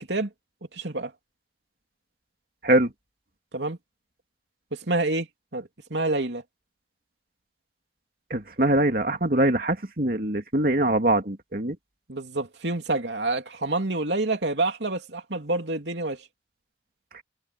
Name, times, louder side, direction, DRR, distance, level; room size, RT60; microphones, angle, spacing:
voice 1, 0.7-1.1 3.5-3.8 4.9-5.3 5.5-6.4 12.1-16.2, right 2 dB, 85° right, 3.0 m, -27 dB
voice 2, 8.3-11.8 17.1-17.2, right 1 dB, 55° right, 2.7 m, -23 dB
head